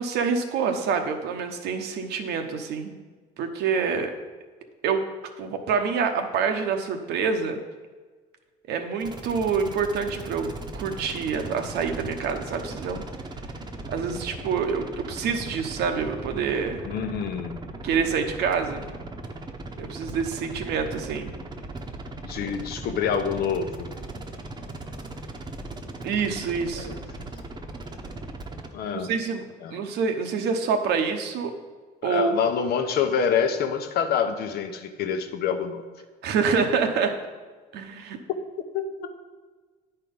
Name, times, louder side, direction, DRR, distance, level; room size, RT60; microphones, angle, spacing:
voice 1, 0.0-3.0 3.4-4.1 4.8-5.1 5.4-7.6 8.7-13.0 13.9-16.8 17.8-18.9 19.8-21.3 26.0-27.0 28.9-29.4 29.7-31.5 32.0-32.3 36.2-37.1 37.7-38.2, right 5 dB, 80° right, 6 dB, 1.0 m, -26 dB
sound 1, 9.0-28.7, right 2 dB, 25° right, 0.9 m, -38 dB
voice 2, 16.8-17.6 22.2-23.9 26.8-27.0 28.7-29.1 29.6-29.8 32.0-35.8 38.7-39.1, left 7 dB, 70° left, 7 dB, 0.9 m, -26 dB
9.8 x 4.5 x 5.3 m, 1.4 s
cardioid pair, 110°, 17 cm